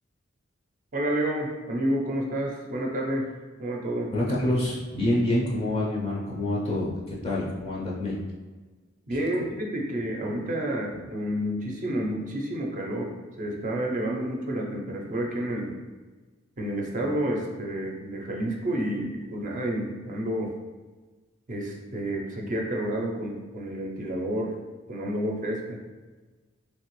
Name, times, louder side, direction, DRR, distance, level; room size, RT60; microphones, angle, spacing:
voice 1, 0.9-3.3 3.6-4.1 9.1-13.1 13.4-15.7 16.6-20.5 21.5-24.6 24.9-25.8, right 1 dB, 40° right, -1 dB, 0.5 m, -30 dB
voice 2, 4.1-8.2, left 1 dB, 30° left, -4 dB, 0.5 m, -27 dB
3.2 x 2.8 x 3.0 m, 1.3 s
head